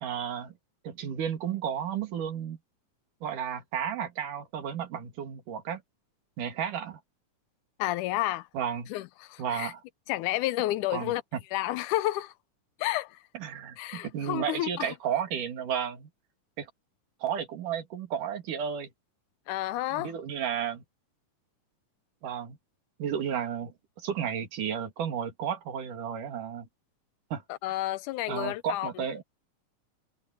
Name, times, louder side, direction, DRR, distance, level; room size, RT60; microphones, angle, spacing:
voice 1, 0.0-0.5 0.8-2.6 3.2-5.8 6.4-7.0 8.5-8.9 9.4-9.8 10.9-11.4 13.3-16.1 16.6-16.7 17.2-18.9 19.9-20.8 22.2-22.6 23.0-26.7 27.3-27.4 28.3-29.2, right 8 dB, 85° right, 3.7 m, -33 dB
voice 2, 7.8-8.5 8.9-9.7 10.1-11.2 11.5-12.3 12.8-13.2 13.8-14.9 19.5-20.1 27.5-29.0, left 16 dB, 85° left, 2.1 m, -30 dB
omnidirectional pair, 3.6 m